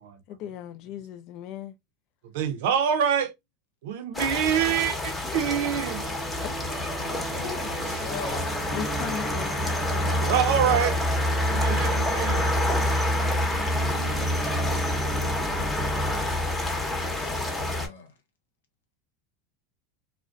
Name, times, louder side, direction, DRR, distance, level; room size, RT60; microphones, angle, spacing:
voice 1, 0.3-1.8 6.4-6.5 8.7-10.1, left 10 dB, 55° left, 0.4 m, -37 dB
voice 2, 2.3-3.3 3.8-6.0 10.0-11.0 11.4-12.4 13.4-13.6, right 8 dB, 75° right, 0.5 m, -26 dB
sound 1, 4.1-17.9, left 1 dB, 15° left, 0.8 m, -27 dB
sound 2, 5.3-16.8, right 5 dB, 20° right, 0.6 m, -37 dB
voice 3, 7.4-8.5 16.8-18.1, left 6 dB, 85° left, 0.8 m, -40 dB
2.4 x 2.1 x 2.5 m
hypercardioid pair, 105°, 0 cm